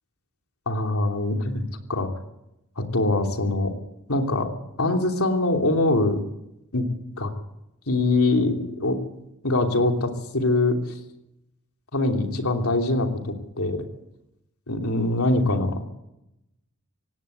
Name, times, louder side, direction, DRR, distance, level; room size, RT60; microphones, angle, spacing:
voice 1, 0.7-1.6 1.9-2.1 2.8-3.7 4.1-4.5 4.8-6.2 6.7-6.8 7.2-7.3 7.9-9.0 9.4-11.0 11.9-13.8 14.7-15.8, left 2 dB, 80° left, 3 dB, 3.1 m, -23 dB
18.5 x 17.0 x 8.1 m, 0.87 s
head